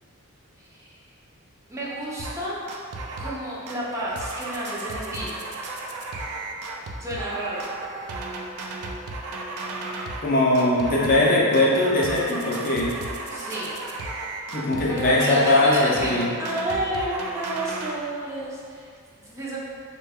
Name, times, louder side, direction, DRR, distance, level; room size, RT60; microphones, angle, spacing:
voice 1, 0.6-1.0 1.7-2.6 3.2-5.4 7.0-7.6 13.3-13.7 14.9-16.1 16.4-19.6, right 1 dB, 15° right, -7 dB, 0.5 m, -31 dB
sound 1, 2.2-2.4 2.7-3.4 3.7-10.3 10.6-11.3 11.5-17.9, right 2 dB, 85° right, 0.4 m, -34 dB
voice 2, 10.2-12.9 14.5-16.3, left 2 dB, 40° left, -4 dB, 0.5 m, -20 dB
3.2 x 2.2 x 3.4 m, 2.2 s
head